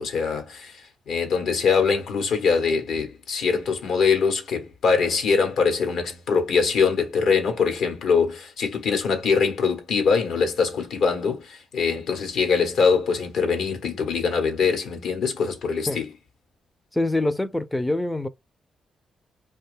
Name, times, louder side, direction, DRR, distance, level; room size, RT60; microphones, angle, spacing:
voice 1, 0.0-16.1, left 5 dB, 75° left, 1.0 m, -23 dB
voice 2, 16.9-18.3, left 2 dB, 10° left, 0.4 m, -25 dB
2.6 x 2.3 x 3.3 m
cardioid pair, 65°, 0 cm